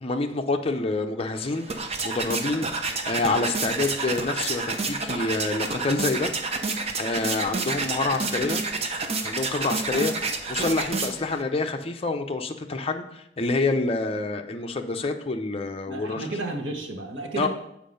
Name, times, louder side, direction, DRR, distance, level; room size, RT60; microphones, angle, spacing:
voice 1, 0.0-6.3 7.0-8.6 9.2-16.3 17.4-17.5, left 3 dB, 30° left, 4 dB, 0.6 m, -27 dB
sound 1, 1.4-11.4, right 3 dB, 35° right, 0.7 m, -29 dB
voice 2, 15.9-17.5, right 2 dB, 85° right, 2 dB, 1.3 m, -32 dB
7.4 x 4.7 x 5.2 m, 0.80 s
head